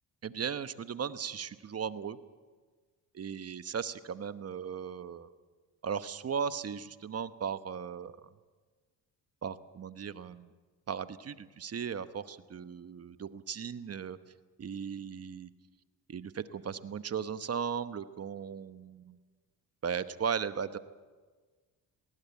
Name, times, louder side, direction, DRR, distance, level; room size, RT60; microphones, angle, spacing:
voice 1, 0.2-2.2 3.1-5.3 5.8-8.2 9.4-10.5 10.9-14.2 14.6-15.5 16.1-19.2 19.8-20.8, right 7 dB, 40° right, 12 dB, 1.0 m, -37 dB
19.0 x 19.0 x 8.4 m, 1.4 s
cardioid pair, 85°, 39 cm